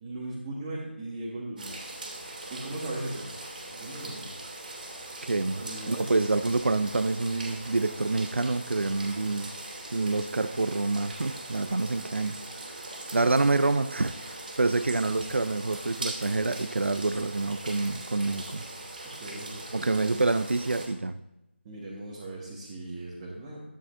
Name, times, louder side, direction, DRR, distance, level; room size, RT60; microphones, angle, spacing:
voice 1, 0.0-1.7 2.5-3.3 3.7-4.3 5.5-6.2 19.0-20.0 21.6-23.6, right 2 dB, 20° right, -6 dB, 1.5 m, -38 dB
sound 1, 1.6-20.9, right 2 dB, 45° right, 2.5 m, -41 dB
voice 2, 5.2-9.5 9.9-12.4 13.1-14.1 14.6-18.6 19.7-21.2, right 3 dB, 75° right, 12 dB, 0.5 m, -27 dB
12.5 x 9.3 x 2.7 m, 0.93 s
figure-of-eight pair, 165°, 7 cm